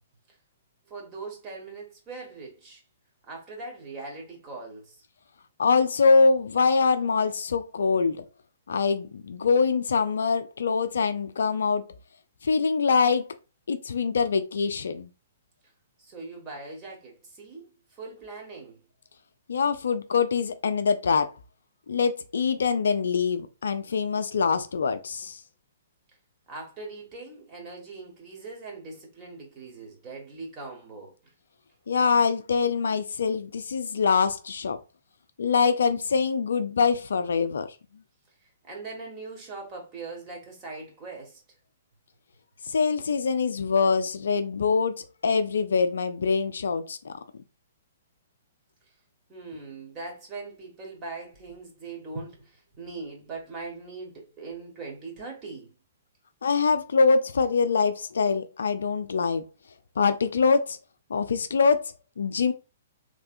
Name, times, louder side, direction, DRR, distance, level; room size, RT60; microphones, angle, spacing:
voice 1, 0.9-2.8 3.3-5.0 16.0-18.8 26.5-31.1 38.7-41.4 49.3-55.7, right 3 dB, 25° right, 1.5 m, -41 dB
voice 2, 5.6-8.2 8.7-11.9 12.4-13.3 13.7-15.1 19.5-21.3 21.9-25.4 31.9-34.8 35.4-37.8 42.7-47.1 56.4-59.4 60.0-60.8 61.1-62.5, left 5 dB, 60° left, 0.4 m, -24 dB
3.3 x 3.3 x 2.4 m
figure-of-eight pair, 115°, 0 cm